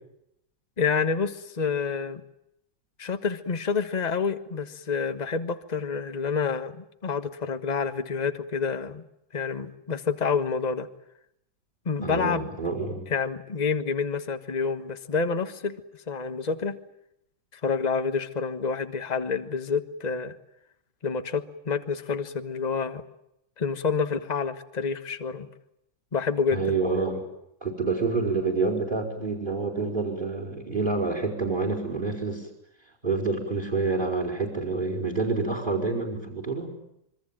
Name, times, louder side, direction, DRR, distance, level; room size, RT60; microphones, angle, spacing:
voice 1, 0.8-2.2 3.0-6.8 7.0-9.0 9.3-10.9 11.8-12.5 13.1-15.8 16.1-16.8 17.5-20.3 21.0-23.0 23.6-25.5 26.1-26.6, left 5 dB, 25° left, 10 dB, 1.4 m, -28 dB
voice 2, 12.0-13.1 26.5-27.3 27.6-32.5 33.0-36.7, right 3 dB, 25° right, 4 dB, 4.9 m, -28 dB
26.5 x 23.5 x 8.9 m, 0.79 s
omnidirectional pair, 2.1 m